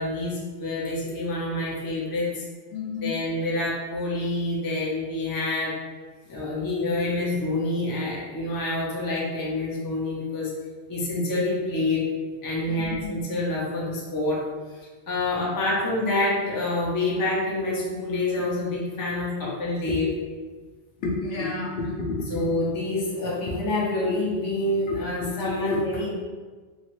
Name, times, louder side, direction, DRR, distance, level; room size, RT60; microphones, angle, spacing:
voice 1, 0.0-2.4 3.0-5.7 6.3-10.5 10.9-12.1 12.4-14.4 14.7-20.1 22.3-26.1, left 2 dB, 25° left, -5 dB, 0.4 m, -27 dB
voice 2, 2.7-3.2 12.7-13.3 18.3-18.4 19.9-20.2 21.0-22.6 23.5-23.6 24.0-24.2 24.9-25.8, left 3 dB, 65° left, -3 dB, 0.8 m, -31 dB
3.0 x 2.3 x 3.0 m, 1.4 s
omnidirectional pair, 1.2 m